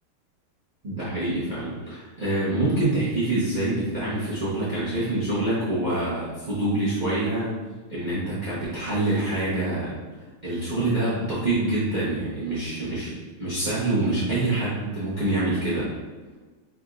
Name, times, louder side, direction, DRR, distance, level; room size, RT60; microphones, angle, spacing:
voice 1, 0.8-7.5 7.9-13.1 13.4-15.9, right 2 dB, 40° right, -10 dB, 0.6 m, -26 dB
4.9 x 3.4 x 2.4 m, 1.3 s
omnidirectional pair, 2.3 m